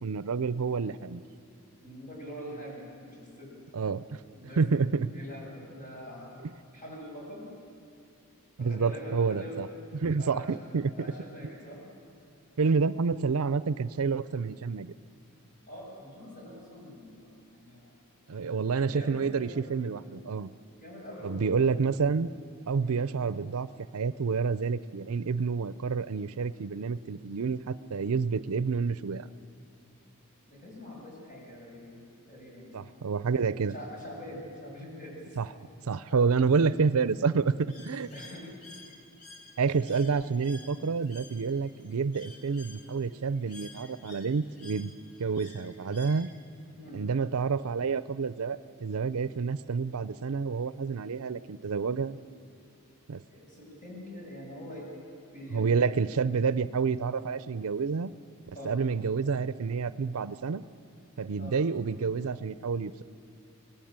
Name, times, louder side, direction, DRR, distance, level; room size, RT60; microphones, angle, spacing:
voice 1, 0.0-1.2 3.7-4.2 4.6-5.1 6.4-6.5 8.6-9.7 9.9-10.9 12.6-14.9 18.3-20.5 21.2-22.3 22.7-23.7 23.9-29.3 32.7-33.7 35.4-35.5 35.9-38.1 39.6-44.9 45.2-46.3 46.9-52.2 53.1-53.2 55.5-58.1 58.6-60.6 61.2-63.0, right 5 dB, 70° right, 16 dB, 0.5 m, -29 dB
voice 2, 1.8-3.5 4.3-4.6 5.1-6.4 6.7-7.5 8.6-9.6 10.2-10.5 11.0-11.8 15.7-17.9 18.3-19.7 20.8-21.5 22.8-23.0 30.5-32.7 33.7-35.2 36.1-36.2 38.1-38.5 39.8-40.0 46.8-47.0 53.3-54.9 55.3-55.9 58.5-58.8 61.4-61.6, equal, 40° left, -2 dB, 7.6 m, -44 dB
Bird, 37.7-46.7, left 3 dB, 90° left, 2.1 m, -52 dB
24.5 x 18.5 x 8.9 m, 2.4 s
head